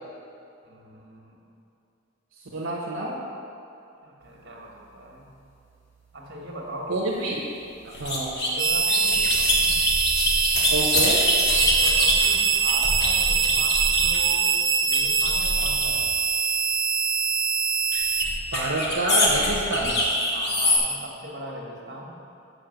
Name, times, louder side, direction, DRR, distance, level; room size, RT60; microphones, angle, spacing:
voice 1, 0.6-1.4 4.0-5.3 6.1-7.0 8.5-9.8 11.7-14.5 14.8-16.0 20.3-22.2, right 1 dB, 55° right, -1 dB, 1.4 m, -39 dB
voice 2, 2.5-3.2 6.9-7.4 8.0-8.3 10.7-11.2 18.5-20.0, right 2 dB, 75° right, -4 dB, 0.9 m, -27 dB
sound 1, 7.9-14.3 14.9-16.2 17.9-20.8, left 1 dB, 60° left, 1.4 m, -24 dB
sound 2, 8.6-18.2, right 6 dB, 25° right, 0.4 m, -23 dB
6.4 x 5.2 x 6.4 m, 2.7 s
head